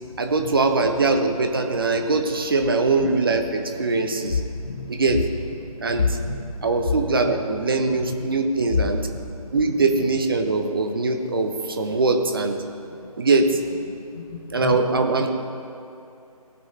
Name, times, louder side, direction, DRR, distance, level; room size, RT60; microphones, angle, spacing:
voice 1, 0.2-4.4 4.9-5.2 5.8-6.2 6.6-9.1 9.5-12.6 13.2-13.6 14.5-15.3, right 3 dB, 35° right, 4 dB, 0.9 m, -22 dB
voice 2, 4.3-4.9 5.7-5.9 6.2-6.6 8.1-8.2 9.4-9.5 12.9-13.0 14.1-14.8, left 4 dB, 30° left, 5 dB, 0.7 m, -31 dB
18.0 x 6.2 x 4.4 m, 2.8 s
figure-of-eight pair, 155°, 19 cm